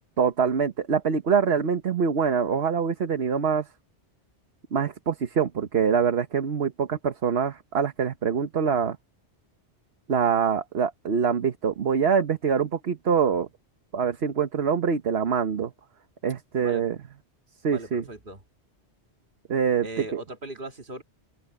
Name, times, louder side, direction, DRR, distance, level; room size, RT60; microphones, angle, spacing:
voice 1, 0.2-3.6 4.7-9.0 10.1-13.5 13.9-15.7 16.2-16.9 17.6-18.0 19.5-19.9 20.1-20.2, right 6 dB, 70° right, 1.4 m, -24 dB
voice 2, 17.7-18.4 19.8-21.0, right 2 dB, 50° right, 2.4 m, -38 dB
open air
omnidirectional pair, 1.2 m